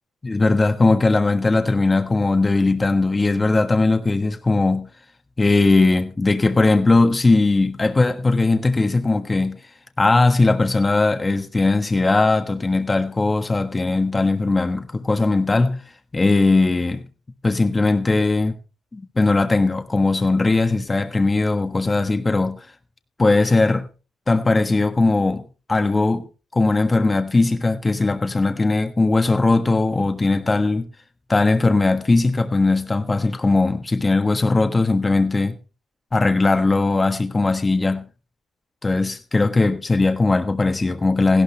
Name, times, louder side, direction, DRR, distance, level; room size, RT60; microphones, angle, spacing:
voice 1, 0.2-4.9 5.4-9.6 10.0-15.8 16.1-17.0 17.4-18.5 18.9-22.7 23.2-23.8 24.3-26.3 26.5-30.9 31.3-35.6 36.1-38.1 38.8-41.4, left 3 dB, 25° left, 1.3 m, -19 dB
16.0 x 12.0 x 3.4 m
cardioid pair, 90°, 0 cm